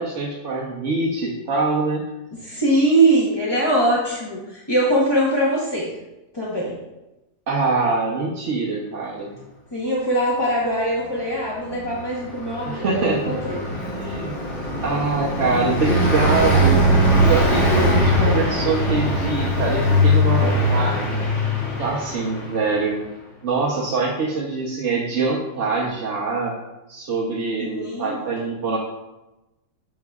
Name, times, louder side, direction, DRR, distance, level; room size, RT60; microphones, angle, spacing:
voice 1, 0.0-2.0 7.5-9.3 12.7-13.4 13.7-14.4 14.8-21.2 21.8-23.0 23.4-26.5 26.9-28.8, right 3 dB, 55° right, -3 dB, 1.0 m, -24 dB
voice 2, 2.4-5.9 6.3-6.7 9.7-13.6 27.6-28.2, right 1 dB, 20° left, -6 dB, 0.8 m, -22 dB
Car passing by, 11.7-22.7, equal, 70° left, 3.0 m, -20 dB
7.7 x 6.4 x 2.3 m, 1.0 s
omnidirectional pair, 1.8 m